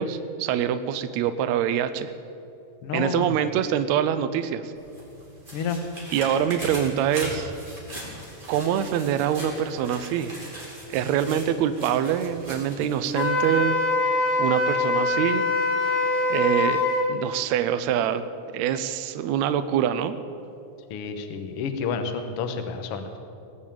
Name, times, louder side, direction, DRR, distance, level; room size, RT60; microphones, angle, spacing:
voice 1, 0.0-2.1 2.9-4.7 5.6-5.7 6.1-7.5 8.5-10.3 10.9-13.8 14.0-14.1 14.4-15.5 15.8-16.0 16.3-16.8 17.1-18.2 18.5-20.1, right 9 dB, 85° right, 11 dB, 1.6 m, -25 dB
voice 2, 2.8-3.3 5.5-5.8 20.9-23.2, left 6 dB, 65° left, 7 dB, 1.5 m, -30 dB
sound 1, 4.7-13.5 13.9-14.0, right 1 dB, 15° right, 3.4 m, -40 dB
Wind instrument woodwind instrument, 13.1-17.1, left 2 dB, 80° left, 3.6 m, -23 dB
18.5 x 7.5 x 8.6 m, 2.7 s
omnidirectional pair, 3.9 m